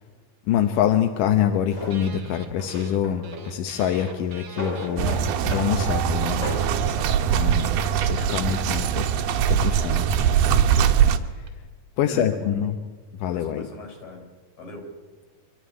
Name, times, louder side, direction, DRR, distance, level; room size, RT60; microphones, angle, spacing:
voice 1, 0.5-5.2 5.4-6.4 7.3-7.7 8.1-9.0 9.5-10.1 11.4-11.5 12.0-12.8 13.2-13.7, left 9 dB, 70° left, 6 dB, 2.3 m, -25 dB
Drawer open or close, 1.7-2.0 2.5-3.4 3.7-5.2 5.5-5.7 6.0-6.7, equal, 20° left, 6.9 m, -34 dB
sound 1, 1.9-3.0 3.2-11.5, right 7 dB, 55° right, 2.6 m, -47 dB
sound 2, 5.0-11.2, right 8 dB, 85° right, 3.0 m, -22 dB
voice 2, 7.5-9.3 12.0-12.7 13.3-14.3 14.6-14.9, left 3 dB, 50° left, 2 dB, 6.2 m, -41 dB
24.5 x 14.5 x 9.8 m, 1.4 s
omnidirectional pair, 4.3 m